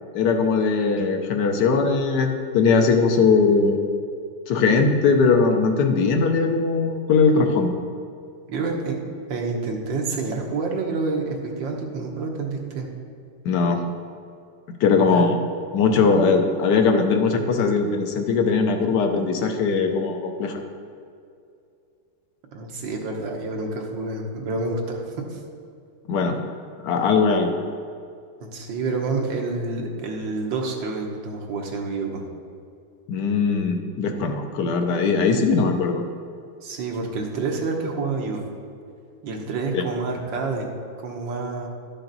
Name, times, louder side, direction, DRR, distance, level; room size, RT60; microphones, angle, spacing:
voice 1, 0.1-3.8 4.5-7.7 13.4-13.8 14.8-15.4 15.7-20.6 26.1-26.4 26.8-27.6 33.1-36.0 39.7-39.8, left 4 dB, 70° left, 5 dB, 1.3 m, -20 dB
voice 2, 8.5-9.0 9.3-12.9 14.9-15.3 22.5-25.4 28.4-32.2 36.6-38.5 39.2-40.8 41.0-41.7, right 3 dB, 90° right, 1 dB, 1.8 m, -28 dB
11.5 x 5.9 x 3.9 m, 2.4 s
omnidirectional pair, 2.0 m